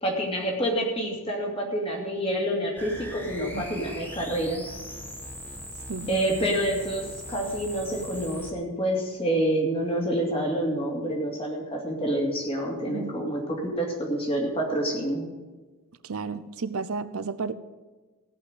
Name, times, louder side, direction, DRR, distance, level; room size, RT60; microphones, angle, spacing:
voice 1, 0.0-4.6 6.1-15.2, right 1 dB, 25° left, -1 dB, 2.7 m, -28 dB
sound 1, 2.8-8.5, equal, 10° left, 1.3 m, -40 dB
voice 2, 5.9-6.2 12.9-13.1 16.0-17.5, right 4 dB, 75° right, 13 dB, 0.6 m, -32 dB
16.5 x 5.9 x 7.8 m, 1.2 s
head